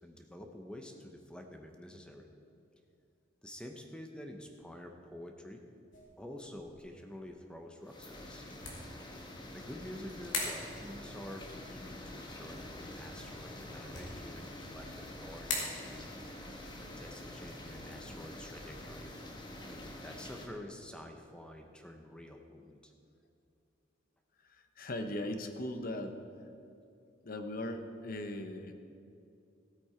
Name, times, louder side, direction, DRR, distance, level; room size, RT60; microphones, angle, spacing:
voice 1, 0.0-2.3 3.4-5.6 6.2-8.6 9.5-19.1 19.7-22.9, left 1 dB, 5° left, 4 dB, 0.8 m, -48 dB
sound 1, 5.9-20.1, left 3 dB, 75° left, 2.6 m, -46 dB
sound 2, 7.8-20.5, left 1 dB, 25° left, 1.2 m, -47 dB
voice 2, 24.4-26.2 27.2-28.7, left 1 dB, 50° left, 7 dB, 0.9 m, -39 dB
15.0 x 8.6 x 4.5 m, 2.6 s
head